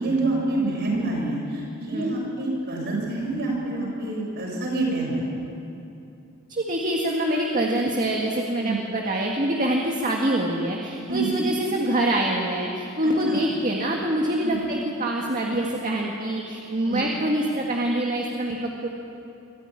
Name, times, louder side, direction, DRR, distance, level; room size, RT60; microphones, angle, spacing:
voice 1, 0.0-5.3 8.6-8.8 11.1-11.3 13.0-13.4 14.4-14.6 16.8-17.0, right 2 dB, 55° right, -3 dB, 7.2 m, -27 dB
voice 2, 6.5-18.9, right 1 dB, 40° right, 0 dB, 1.8 m, -25 dB
23.5 x 14.5 x 9.7 m, 2.7 s
head